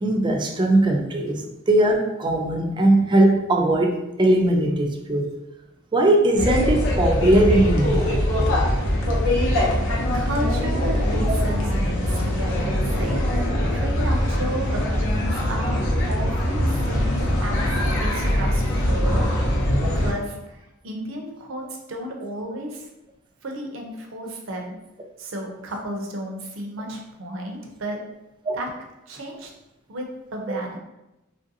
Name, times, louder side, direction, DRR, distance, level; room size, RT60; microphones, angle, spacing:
voice 1, 0.0-5.3 5.9-8.2 28.5-28.6, right 1 dB, 25° right, 2 dB, 0.3 m, -20 dB
sound 1, 6.4-20.1, left 1 dB, 65° left, 0.7 m, -22 dB
voice 2, 10.1-13.2 13.7-19.3 19.9-21.6 21.9-22.9 23.4-24.8 25.2-28.0 28.5-28.7 29.1-29.5 29.9-30.1 30.3-30.8, right 1 dB, 70° right, 1 dB, 0.6 m, -33 dB
3.1 x 2.6 x 2.6 m, 0.95 s
head